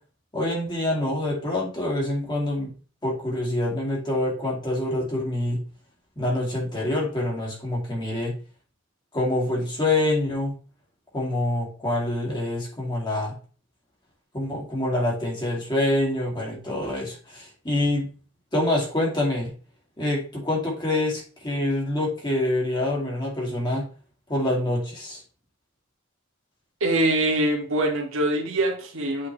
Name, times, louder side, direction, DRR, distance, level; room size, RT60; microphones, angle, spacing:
voice 1, 0.3-2.7 3.0-5.6 6.2-8.4 9.1-10.5 11.1-13.3 14.3-18.1 18.5-19.5 20.0-23.9 24.3-25.2, left 1 dB, 20° left, -3 dB, 2.5 m, -26 dB
voice 2, 26.8-29.3, right 1 dB, 75° right, 1 dB, 1.9 m, -23 dB
8.4 x 4.5 x 3.3 m, 0.38 s
head